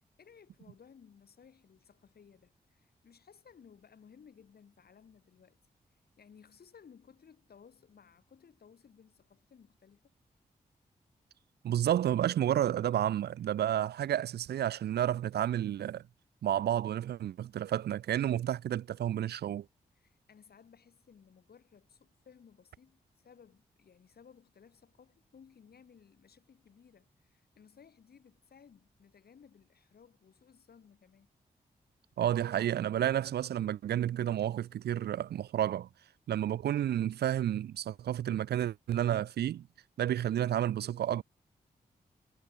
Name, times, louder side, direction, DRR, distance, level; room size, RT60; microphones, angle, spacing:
voice 1, 0.0-5.6 5.9-10.1 19.9-31.3, left 7 dB, 70° left, 6.6 m, -59 dB
voice 2, 11.6-16.0 16.4-19.7 32.2-35.9 36.3-39.7 40.0-41.2, right 11 dB, 85° right, 0.7 m, -31 dB
supercardioid pair, 40°, 16 cm